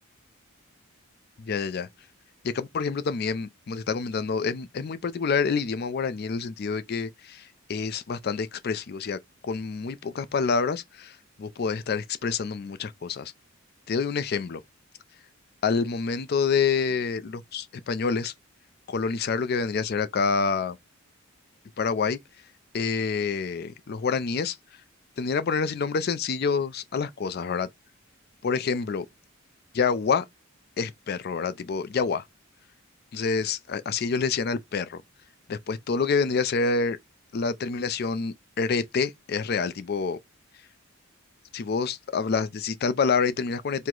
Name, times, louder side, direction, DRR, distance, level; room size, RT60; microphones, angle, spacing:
voice 1, 1.4-1.9 2.4-13.3 13.9-14.6 15.6-18.3 18.9-20.8 21.8-22.2 22.7-24.6 25.2-27.7 28.4-29.0 29.7-30.2 30.8-32.2 33.1-35.0 35.5-37.0 37.3-40.2 41.5-43.9, left 5 dB, 50° left, 0.4 m, -27 dB
4.6 x 2.1 x 3.7 m
head